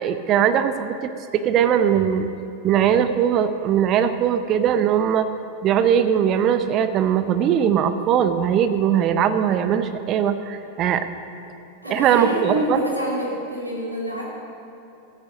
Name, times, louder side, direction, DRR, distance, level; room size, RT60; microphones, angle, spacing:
voice 1, 0.0-2.3 2.6-5.3 5.6-11.1 11.9-12.8, right 9 dB, 35° right, 10 dB, 0.6 m, -20 dB
voice 2, 11.8-14.2, equal, 90° right, -4 dB, 2.4 m, -27 dB
14.0 x 9.5 x 5.1 m, 2.8 s
figure-of-eight pair, 90°, 0 cm